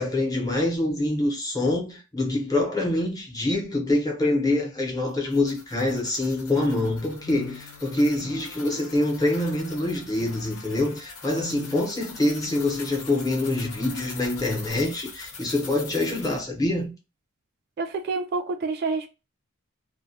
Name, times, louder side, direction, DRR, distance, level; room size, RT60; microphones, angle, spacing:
voice 1, 0.0-16.9, left 2 dB, 15° left, 0.7 m, -25 dB
sound 1, 5.1-16.4, left 4 dB, 80° left, 0.8 m, -43 dB
sound 2, 6.7-14.7, left 7 dB, 65° left, 0.4 m, -47 dB
voice 2, 17.8-19.1, right 4 dB, 45° right, 0.3 m, -28 dB
2.2 x 2.1 x 2.6 m
head